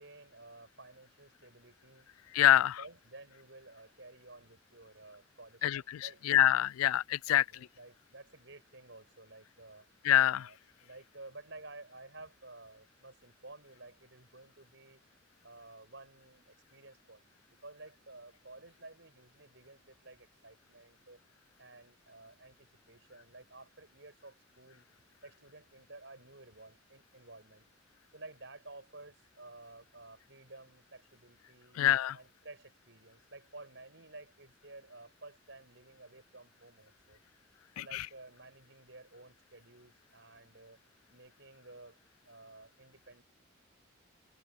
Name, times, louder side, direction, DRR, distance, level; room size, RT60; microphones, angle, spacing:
voice 1, 0.0-2.1 2.5-6.2 7.3-9.9 10.3-15.0 15.4-21.2 21.6-24.8 25.2-27.7 28.1-31.8 32.1-37.2 37.8-40.8 41.1-42.0 42.3-43.2, right 2 dB, 60° right, 7.9 m, -53 dB
voice 2, 2.3-2.8 5.6-7.4 10.0-10.5 31.8-32.2 37.8-38.1, left 12 dB, 90° left, 0.3 m, -26 dB
open air
head